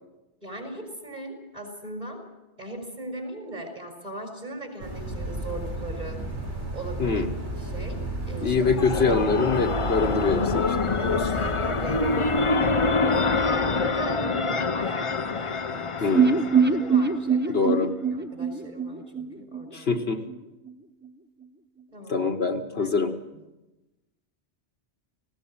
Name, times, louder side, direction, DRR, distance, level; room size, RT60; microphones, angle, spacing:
voice 1, 0.4-2.2 2.6-6.2 6.7-7.2 7.6-8.6 9.1-9.2 11.0-12.4 12.8-16.2 16.5-17.7 18.0-20.0 21.9-22.2 22.8-23.0, right 1 dB, 30° right, 4 dB, 4.6 m, -39 dB
sound 1, 4.8-14.4, right 1 dB, 75° right, 4.2 m, -34 dB
voice 2, 8.4-11.0 16.0-16.4 17.5-17.9 19.7-20.2 22.1-23.1, left 4 dB, 60° left, 7 dB, 1.3 m, -24 dB
sound 2, 8.4-17.2, left 4 dB, 30° left, 0.7 m, -26 dB
sound 3, 16.1-20.0 20.3-20.4 20.7-20.8, right 5 dB, 15° right, 0.5 m, -23 dB
19.5 x 16.5 x 8.7 m, 1.0 s
omnidirectional pair, 1.2 m